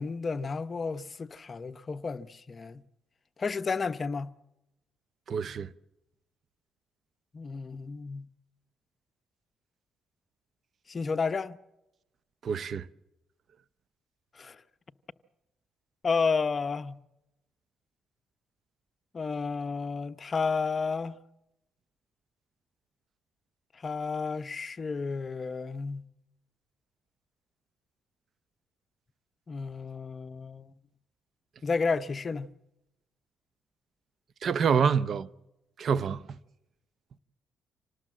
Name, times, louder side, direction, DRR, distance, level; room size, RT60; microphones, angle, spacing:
voice 1, 0.0-2.8 3.4-4.3 7.3-8.3 10.9-11.6 14.4-14.6 16.0-17.0 19.1-21.2 23.8-26.1 29.5-30.7 31.6-32.5, left 4 dB, 35° left, 0.8 m, -31 dB
voice 2, 5.3-5.7 12.4-12.9 34.4-35.3 35.8-36.2, right 6 dB, 55° right, 0.7 m, -26 dB
26.5 x 18.5 x 7.5 m
cardioid pair, 90°, 0 cm